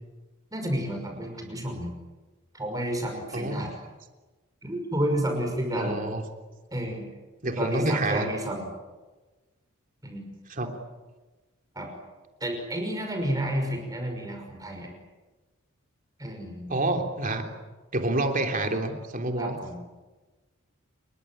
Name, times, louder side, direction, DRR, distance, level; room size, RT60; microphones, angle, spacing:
voice 1, 0.5-1.9 2.5-3.7 4.6-6.0 6.7-7.0 7.6-8.7 10.0-10.3 11.8-11.9 12.4-14.9 16.2-16.7 19.4-19.8, equal, 15° right, 3 dB, 5.7 m, -30 dB
voice 2, 3.3-3.7 5.7-6.2 7.4-8.3 10.5-10.7 16.7-17.5 17.9-19.6, right 2 dB, 40° right, 4 dB, 3.4 m, -28 dB
28.5 x 22.5 x 9.1 m, 1.2 s
head